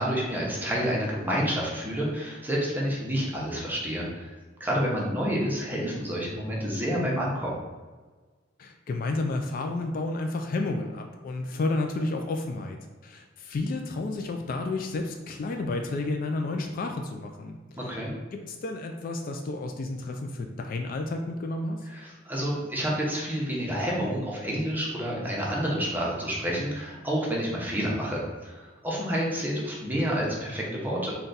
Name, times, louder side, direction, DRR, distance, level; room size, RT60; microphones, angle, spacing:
voice 1, 0.0-4.3 4.6-7.6 17.9-18.1 21.9-31.2, equal, 10° right, -4 dB, 0.8 m, -29 dB
voice 2, 8.6-17.6 17.8-17.9 18.3-21.9, left 2 dB, 50° left, 4 dB, 0.3 m, -31 dB
3.8 x 2.3 x 3.9 m, 1.4 s
head